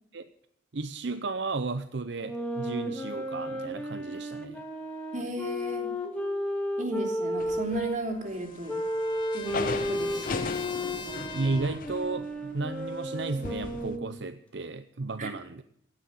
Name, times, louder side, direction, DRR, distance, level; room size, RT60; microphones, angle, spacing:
voice 1, 0.7-4.6 11.3-15.6, right 3 dB, 70° right, 11 dB, 0.7 m, -33 dB
sound 1, 2.1-8.0 8.7-14.1, equal, 5° left, 2.4 m, -33 dB
voice 2, 5.1-5.9 6.8-8.7 9.3-10.4 15.2-15.3, right 1 dB, 40° right, 3 dB, 3.4 m, -35 dB
sound 2, 7.4-8.1 8.4-14.0, left 3 dB, 45° left, 0.8 m, -38 dB
Trumpet, 7.5-11.9, left 4 dB, 25° left, 1.5 m, -43 dB
16.5 x 10.5 x 7.5 m, 0.73 s
head